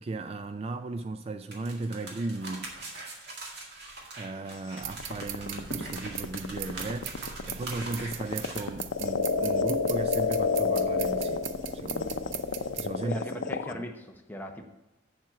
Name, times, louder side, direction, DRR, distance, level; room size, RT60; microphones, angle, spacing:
voice 1, 0.0-2.7 4.2-11.5 11.7-12.2 12.6-13.2 13.7-13.8, right 2 dB, 30° right, 0.3 m, -36 dB
sound 1, 1.5-8.6, right 2 dB, 60° right, 2.0 m, -42 dB
sound 2, 4.8-13.7, left 5 dB, 85° left, 0.6 m, -29 dB
sound 3, 4.8-12.9, right 9 dB, 85° right, 0.5 m, -40 dB
voice 2, 13.0-14.7, equal, 10° left, 0.9 m, -39 dB
7.5 x 7.4 x 5.7 m
head